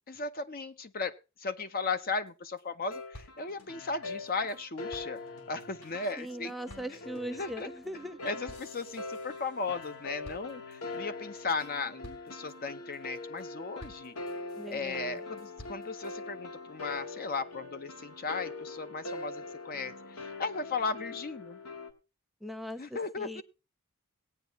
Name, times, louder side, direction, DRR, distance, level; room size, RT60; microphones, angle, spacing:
voice 1, 0.1-5.2 5.5-6.5 7.3-7.7 8.2-14.1 14.7-21.6 22.8-23.4, left 4 dB, 40° left, 10 dB, 0.7 m, -36 dB
sound 1, 2.3-2.4 2.6-2.7 2.9-4.6 4.9-9.9 10.2-11.0 11.4-11.7 12.0-12.5 12.9-13.4 13.8-14.7 15.2-16.1, left 1 dB, 70° left, 4.0 m, -54 dB
sound 2, 2.9-21.9, left 3 dB, 85° left, 1.8 m, -43 dB
voice 2, 6.2-8.3 14.6-15.3 22.4-23.4, equal, ahead, 9 dB, 0.8 m, -41 dB
18.0 x 9.2 x 3.0 m, 0.31 s
head